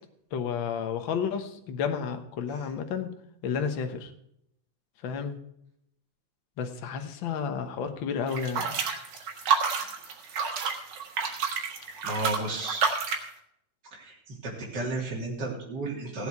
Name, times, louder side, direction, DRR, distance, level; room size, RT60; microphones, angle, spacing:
voice 1, 0.3-3.1 3.4-4.1 5.0-5.4 6.6-8.8, left 6 dB, 55° left, 6 dB, 1.5 m, -31 dB
sound 1, 8.3-13.3, right 6 dB, 70° right, 2.9 m, -29 dB
voice 2, 12.0-12.8 13.9-16.3, right 2 dB, 35° right, -3 dB, 3.5 m, -33 dB
16.5 x 8.0 x 4.7 m, 0.75 s
omnidirectional pair, 3.4 m